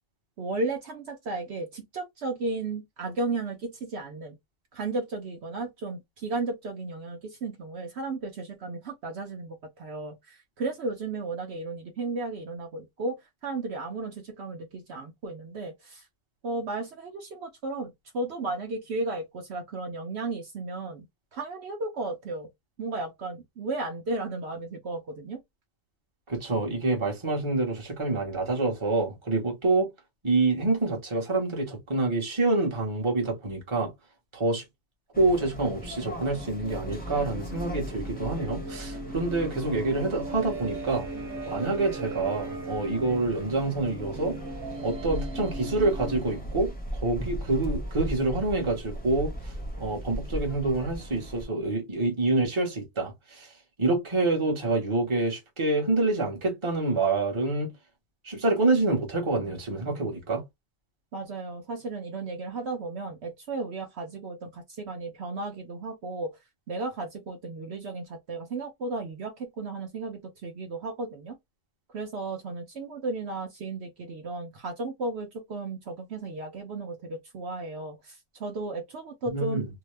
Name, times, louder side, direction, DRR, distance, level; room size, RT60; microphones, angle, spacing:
voice 1, 0.4-4.3 4.7-16.1 16.4-21.1 21.3-22.5 22.8-25.4 61.1-66.4 66.7-71.4 71.9-79.6, right 3 dB, 65° right, 0.9 m, -34 dB
voice 2, 26.3-29.9 30.2-33.9 34.3-34.6 35.2-41.1 41.5-44.4 44.8-53.5 53.8-57.7 58.2-60.4 79.3-79.6, right 2 dB, 25° right, 1.0 m, -27 dB
sound 1, 35.1-51.5, equal, 10° left, 0.5 m, -38 dB
sound 2, 35.4-46.8, right 2 dB, 90° right, 1.1 m, -39 dB
2.7 x 2.1 x 3.1 m
omnidirectional pair, 1.2 m